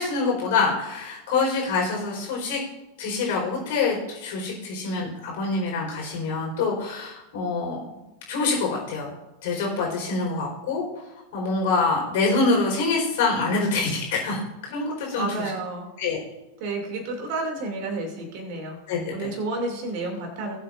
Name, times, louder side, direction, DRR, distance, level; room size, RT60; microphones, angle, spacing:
voice 1, 0.0-2.6 3.0-7.8 8.3-9.1 9.4-10.8 11.3-15.5 16.0-16.2 18.9-19.1, left 3 dB, 50° left, -1 dB, 4.5 m, -25 dB
voice 2, 15.2-15.9 16.6-18.8 19.1-20.6, right 2 dB, 45° right, 2 dB, 2.7 m, -30 dB
19.5 x 7.7 x 2.6 m, 1.0 s
figure-of-eight pair, 90°, 0 cm